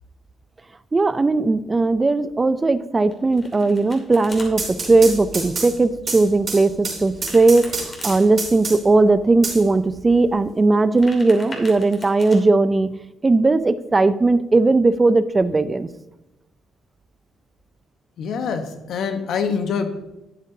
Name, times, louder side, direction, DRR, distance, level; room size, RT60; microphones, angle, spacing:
voice 1, 0.9-7.7 8.0-12.9 13.2-15.9, right 3 dB, 25° right, 14 dB, 0.4 m, -18 dB
Domestic sounds home sounds, 3.1-4.5 7.1-8.2 10.7-12.4, left 2 dB, 35° left, 2.5 m, -40 dB
sound 1, 4.3-9.0 9.4-10.4, right 3 dB, 50° right, 3.7 m, -29 dB
voice 2, 18.2-20.0, left 6 dB, 70° left, 7 dB, 1.0 m, -25 dB
12.0 x 7.8 x 2.7 m, 0.93 s
cardioid pair, 90°, 0 cm